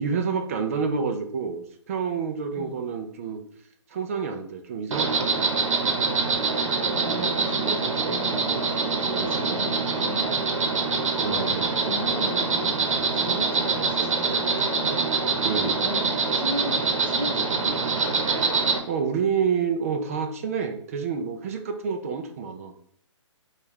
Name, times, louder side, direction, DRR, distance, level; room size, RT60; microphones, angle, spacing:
voice 1, 0.0-3.4 3.9-5.5 9.4-9.6 11.2-11.7 15.4-15.8 18.9-22.8, right 6 dB, 30° right, 7 dB, 0.3 m, -28 dB
Insect, 4.9-18.8, right 4 dB, 75° right, 0.9 m, -25 dB
voice 2, 6.8-11.5 11.8-15.1 15.8-17.8, equal, 5° left, -7 dB, 1.4 m, -36 dB
5.2 x 2.3 x 3.1 m, 0.64 s
hypercardioid pair, 150°, 16 cm